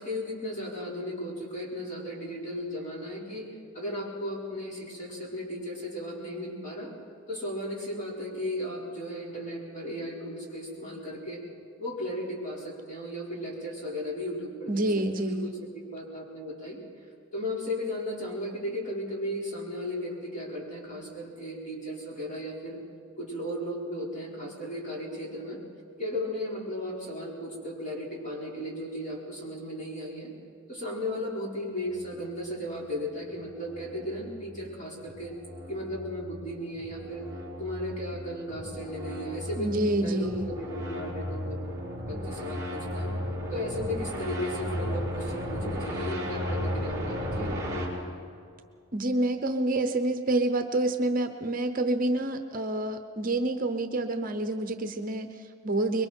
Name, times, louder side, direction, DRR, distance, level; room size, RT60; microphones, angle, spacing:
voice 1, 0.0-3.4 3.7-6.9 7.3-11.4 11.8-14.8 15.1-16.8 17.3-22.8 23.2-25.6 26.0-30.3 30.7-35.3 35.7-37.3 37.6-41.6 42.0-43.1 43.5-47.6, left 1 dB, 35° left, -4 dB, 5.0 m, -35 dB
voice 2, 14.7-15.5 39.6-40.5 48.9-56.1, right 2 dB, 40° right, 7 dB, 0.8 m, -28 dB
sound 1, 33.3-47.9, left 1 dB, 15° right, 5.9 m, -35 dB
25.5 x 22.5 x 4.6 m, 2.4 s
head